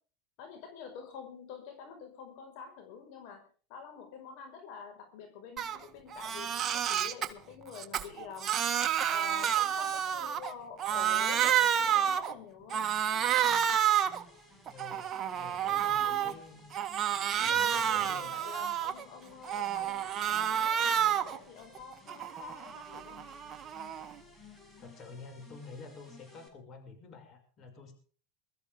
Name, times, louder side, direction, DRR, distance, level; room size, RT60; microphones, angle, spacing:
voice 1, 0.4-3.4 3.7-8.6 9.1-12.9 15.7-16.3 17.4-23.2, left 6 dB, 60° left, 5 dB, 5.3 m, -47 dB
Crying sobbing, 5.6-5.8 6.1-7.3 7.7-10.5 10.8-12.3 12.7-14.2 14.7-16.3 16.7-19.0 19.4-21.4 21.8-24.1, right 9 dB, 35° right, 1.8 m, -29 dB
sound 1, 12.8-26.5, left 3 dB, 20° left, 6.1 m, -57 dB
voice 2, 14.7-16.7 17.4-18.3 24.8-27.9, left 4 dB, 40° left, 6 dB, 6.0 m, -49 dB
22.0 x 14.0 x 3.6 m, 0.42 s
supercardioid pair, 115°, 0 cm